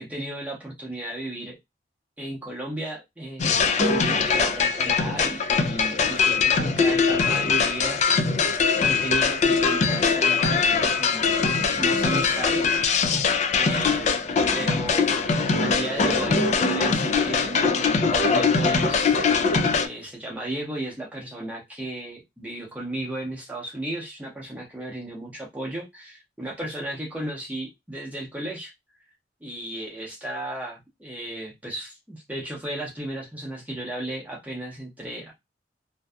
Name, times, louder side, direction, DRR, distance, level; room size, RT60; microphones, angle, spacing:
voice 1, 0.0-1.6 2.2-8.4 8.8-11.2 11.8-12.8 13.6-14.1 14.5-19.2 19.8-28.7 29.4-35.3, right 1 dB, 10° right, 0.7 m, -34 dB
sound 1, 3.4-19.9, left 5 dB, 40° left, 0.3 m, -22 dB
2.6 x 2.3 x 2.2 m
head